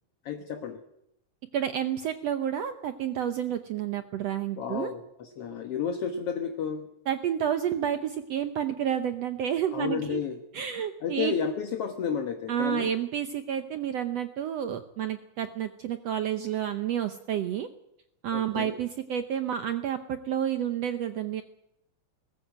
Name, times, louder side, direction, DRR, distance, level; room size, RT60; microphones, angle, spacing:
voice 1, 0.2-0.8 4.6-6.9 9.7-10.4 11.0-12.9 18.3-18.7, left 7 dB, 60° left, 6 dB, 1.7 m, -32 dB
voice 2, 1.5-4.9 7.1-10.2 10.5-11.3 12.5-17.7 18.2-21.4, right 9 dB, 75° right, 9 dB, 1.5 m, -30 dB
20.5 x 15.0 x 9.2 m, 0.81 s
omnidirectional pair, 4.0 m